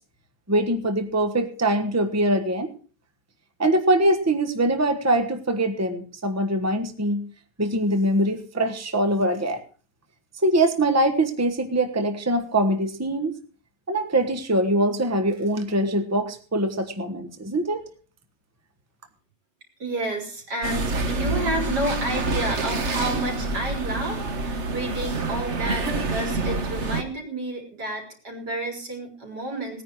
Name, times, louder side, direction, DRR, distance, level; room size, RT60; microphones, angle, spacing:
voice 1, 0.5-2.7 3.6-7.2 7.6-9.6 10.4-13.4 13.9-17.9, right 1 dB, 10° right, 7 dB, 1.2 m, -23 dB
voice 2, 19.8-29.8, right 2 dB, 90° right, 1 dB, 4.7 m, -30 dB
sound 1, 20.6-27.0, right 2 dB, 45° right, 1.6 m, -27 dB
18.5 x 9.9 x 4.7 m, 0.41 s
omnidirectional pair, 1.7 m